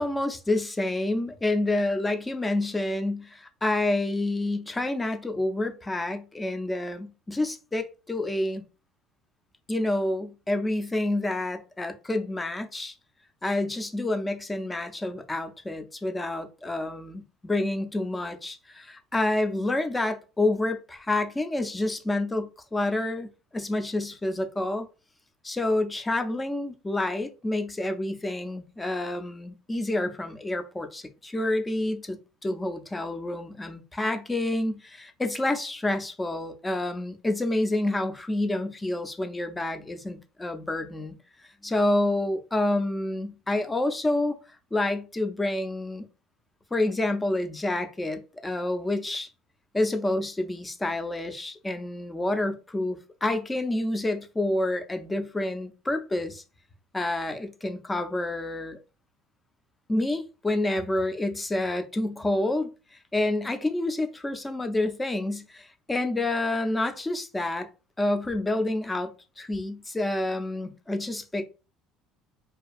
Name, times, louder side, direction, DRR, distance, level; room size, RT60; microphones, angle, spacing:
voice 1, 0.0-8.6 9.7-12.9 13.4-24.9 25.4-41.2 41.6-44.4 44.7-46.1 46.7-49.3 49.7-56.4 56.9-58.8 59.9-62.7 63.1-67.7 68.0-71.4, left 2 dB, 15° left, 0.4 m, -28 dB
2.5 x 2.3 x 2.4 m
cardioid pair, 115°, 0 cm